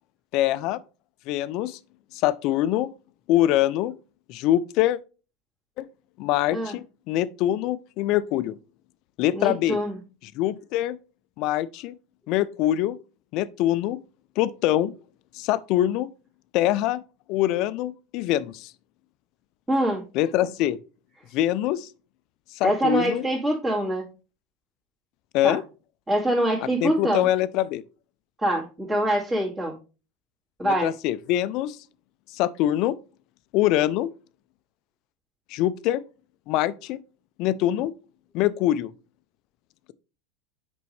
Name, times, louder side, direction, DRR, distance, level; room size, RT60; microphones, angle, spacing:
voice 1, 0.3-0.8 1.3-1.8 2.1-2.9 3.3-3.9 4.3-5.0 5.8-5.9 6.2-8.6 9.2-9.8 10.4-11.0 11.4-11.9 12.3-13.0 13.3-14.0 14.4-14.9 15.3-16.1 16.5-17.0 17.3-18.7 20.1-20.8 21.3-21.9 22.6-23.3 25.3-25.6 26.8-27.8 30.6-31.8 32.3-33.0 33.5-34.1 35.5-36.0 36.5-37.0 37.4-37.9 38.3-38.9, left 13 dB, 55° left, 0.4 m, -24 dB
voice 2, 9.3-10.0 19.7-20.0 22.6-24.0 25.4-25.6 26.1-27.2 28.4-29.8 30.6-30.9, right 1 dB, 20° right, 2.2 m, -24 dB
6.7 x 5.3 x 3.2 m
hypercardioid pair, 90°, 0 cm